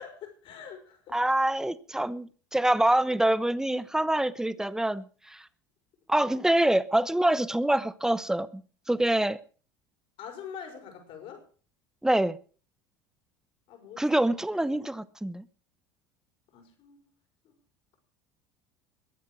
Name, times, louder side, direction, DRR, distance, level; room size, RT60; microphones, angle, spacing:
voice 1, 0.0-1.2 10.2-11.4 13.7-14.1 16.5-17.1 17.4-17.5, left 7 dB, 60° left, 5.8 m, -44 dB
voice 2, 1.1-5.4 6.1-8.6 8.9-9.4 12.0-12.4 14.0-15.4, right 1 dB, 5° right, 1.0 m, -25 dB
21.5 x 7.9 x 6.3 m
hypercardioid pair, 85°, 10 cm